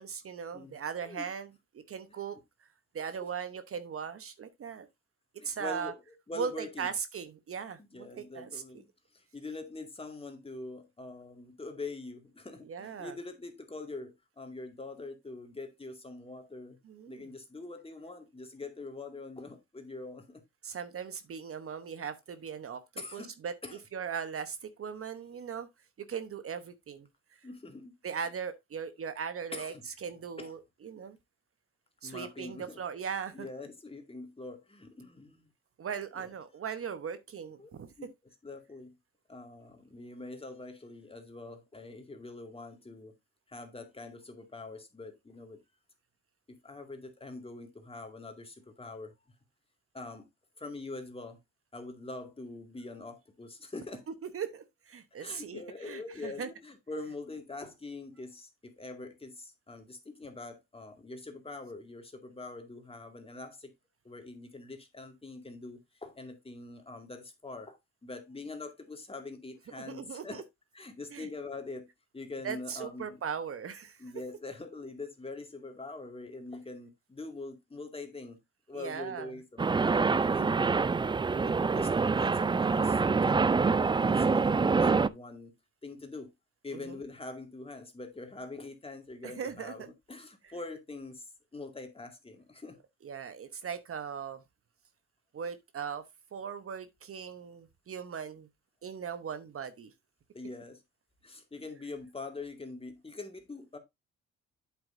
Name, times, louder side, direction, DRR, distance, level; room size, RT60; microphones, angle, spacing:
voice 1, 0.0-2.4 2.9-4.9 5.4-5.9 6.4-8.6 12.6-13.2 16.8-17.3 20.6-23.5 23.9-25.7 26.0-27.4 28.0-29.7 30.0-31.2 32.0-33.5 35.8-38.1 54.3-56.5 69.8-70.4 71.1-71.3 72.4-74.0 78.7-79.3 86.7-87.0 89.2-89.9 93.0-94.4 95.3-96.0 96.3-98.5 98.8-99.9, right 7 dB, 45° right, 1.0 m, -39 dB
voice 2, 5.4-6.9 7.9-8.8 9.1-16.8 17.1-20.4 23.0-23.4 23.6-23.8 27.4-27.9 29.5-29.8 30.4-30.5 32.0-32.8 33.3-35.5 36.2-36.3 37.6-37.7 38.0-38.1 38.4-39.0 39.3-43.2 43.5-45.6 46.5-49.1 49.9-50.3 50.6-51.4 51.7-54.1 55.2-63.7 64.0-70.4 70.7-71.9 72.1-73.2 74.0-78.4 78.7-80.8 81.4-83.7 84.0-85.6 85.8-86.3 86.6-92.8 100.3-100.8 101.2-103.8, left 3 dB, 20° left, 2.2 m, -44 dB
sound 1, 79.6-85.1, right 4 dB, 15° right, 0.4 m, -26 dB
8.2 x 8.0 x 2.6 m
cardioid pair, 90°, 30 cm